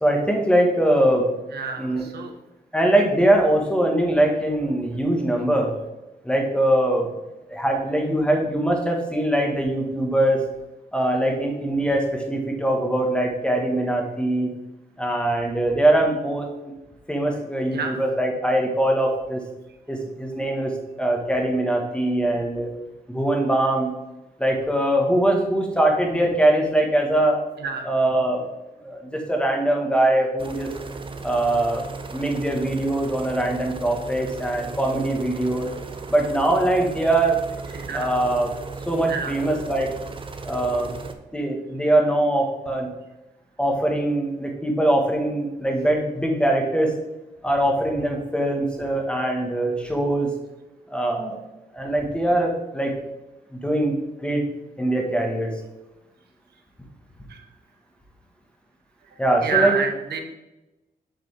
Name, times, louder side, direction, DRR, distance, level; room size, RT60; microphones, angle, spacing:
voice 1, 0.0-1.3 1.8-2.1 2.7-5.7 6.2-7.1 7.5-10.4 10.9-14.5 15.0-16.5 17.1-19.4 19.9-22.7 23.1-24.0 24.4-27.4 27.8-28.4 28.8-30.7 31.2-31.8 32.1-35.7 36.1-37.4 37.9-38.5 38.9-39.9 40.4-40.9 41.3-42.9 43.6-47.0 47.4-50.3 50.9-51.4 51.7-52.9 53.5-54.4 54.8-55.5 59.2-59.7, right 1 dB, 5° left, 1 dB, 1.5 m, -22 dB
voice 2, 1.5-2.3 17.7-18.0 27.6-27.9 37.7-38.1 39.1-39.3 57.3-57.4 59.4-60.2, right 6 dB, 80° right, 3 dB, 1.1 m, -27 dB
sound 1, 30.4-41.1, right 4 dB, 30° right, 0.7 m, -36 dB
7.7 x 5.2 x 3.4 m, 1.0 s
cardioid pair, 95°, 17 cm